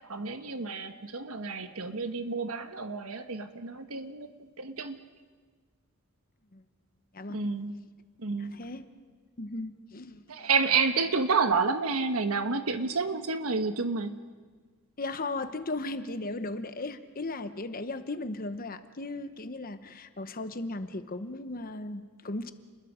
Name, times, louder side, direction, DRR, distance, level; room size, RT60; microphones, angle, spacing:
voice 1, 0.1-4.3 4.6-5.0 7.3-7.7 8.2-8.6 10.3-14.1, right 4 dB, 85° right, 8 dB, 1.4 m, -29 dB
voice 2, 8.4-8.9 9.4-10.2 15.0-22.5, left 2 dB, 40° left, 10 dB, 1.0 m, -36 dB
30.0 x 21.0 x 5.1 m, 1.5 s
head